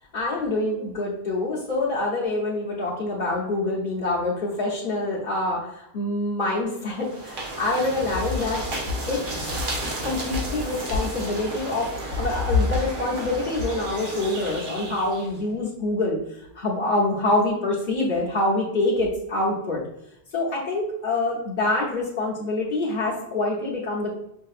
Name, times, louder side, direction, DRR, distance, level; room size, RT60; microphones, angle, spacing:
voice 1, 0.1-8.6 9.1-9.5 10.0-11.9 12.2-16.2 16.5-19.8 20.3-24.1, left 2 dB, 50° left, -6 dB, 1.0 m, -26 dB
sound 1, 7.0-15.4, left 2 dB, 55° right, 0.9 m, -30 dB
5.7 x 2.7 x 2.4 m, 0.79 s
omnidirectional pair, 1.1 m